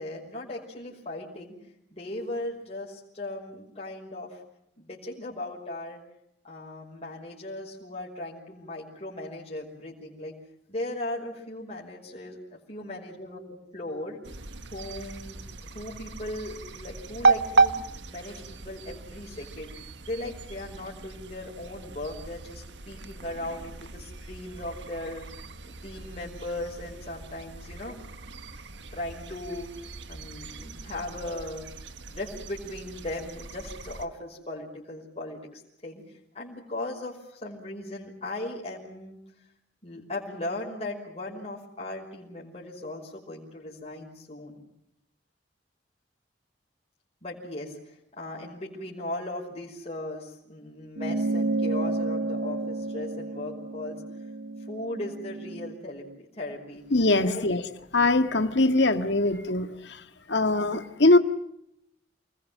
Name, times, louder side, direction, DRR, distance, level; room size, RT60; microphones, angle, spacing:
voice 1, 0.0-1.5 1.9-4.4 4.8-6.0 6.4-10.3 10.7-14.2 14.7-17.7 18.1-19.7 20.0-25.2 25.6-28.0 28.9-29.7 30.1-31.7 32.1-36.0 36.3-39.2 39.8-44.6 47.2-54.0 54.7-56.9 57.2-57.4, left 1 dB, 35° left, 5.5 m, -37 dB
sound 1, 14.2-34.0, right 4 dB, 90° right, 1.5 m, -33 dB
sound 2, 51.0-55.7, right 2 dB, 75° right, 0.9 m, -31 dB
voice 2, 56.9-57.6 57.9-60.0 60.3-61.2, left 2 dB, 75° left, 1.8 m, -22 dB
28.5 x 21.0 x 7.6 m
head